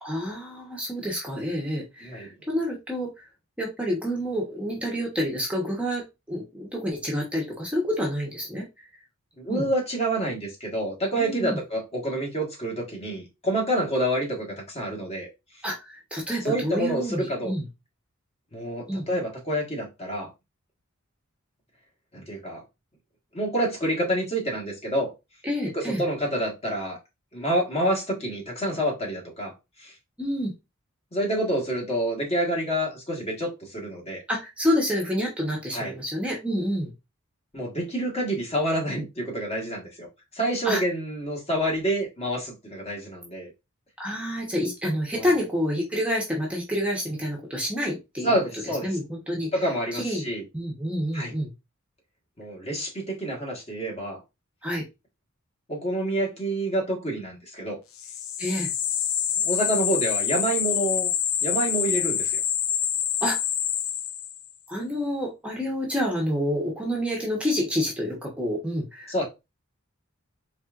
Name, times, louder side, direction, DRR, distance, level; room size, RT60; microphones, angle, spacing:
voice 1, 0.0-3.2 3.6-8.7 9.5-9.7 11.2-11.6 15.6-17.6 18.9-19.1 25.4-26.0 30.2-30.5 34.3-36.9 40.6-40.8 44.0-48.3 48.8-49.5 49.9-50.3 50.5-51.5 54.6-54.8 58.4-58.7 63.2-63.4 64.7-69.2, equal, 5° right, 0.9 m, -28 dB
voice 2, 9.4-15.3 16.4-17.5 18.5-20.3 22.1-22.6 23.3-25.1 25.6-27.0 27.3-29.5 29.8-29.9 31.1-34.2 35.7-35.9 37.5-40.1 40.3-43.5 45.1-45.3 48.2-49.0 49.5-50.4 51.1-51.3 52.4-54.2 55.7-57.8 59.4-61.1 61.4-62.4 69.1-69.3, right 1 dB, 30° left, 1.5 m, -28 dB
sound 1, 58.0-64.5, left 9 dB, 70° left, 0.5 m, -26 dB
4.3 x 3.3 x 2.4 m
head